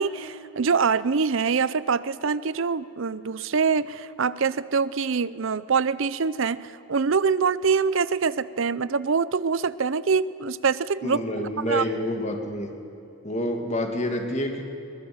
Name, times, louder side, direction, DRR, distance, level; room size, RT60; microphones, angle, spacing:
voice 1, 0.0-11.8, right 5 dB, 65° right, 17 dB, 0.6 m, -24 dB
voice 2, 11.0-12.7 13.2-14.6, left 1 dB, 30° left, 4 dB, 2.3 m, -28 dB
22.5 x 21.5 x 7.9 m, 3.0 s
head